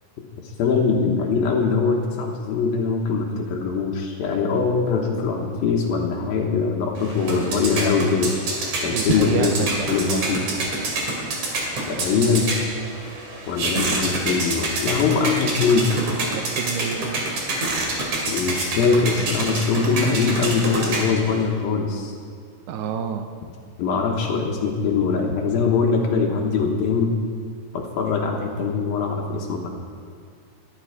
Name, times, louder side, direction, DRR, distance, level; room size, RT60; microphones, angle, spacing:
voice 1, 0.6-8.3 8.8-10.4 11.9-12.5 13.5-15.9 18.3-22.1 23.8-27.1 27.7-29.7, left 5 dB, 70° left, 1 dB, 2.8 m, -22 dB
sound 1, 7.0-21.4, right 2 dB, 50° right, 3.5 m, -27 dB
voice 2, 8.9-9.9 16.3-17.1 22.7-23.3, right 7 dB, 85° right, 7 dB, 3.0 m, -27 dB
18.0 x 12.5 x 4.9 m, 2.1 s
omnidirectional pair, 4.7 m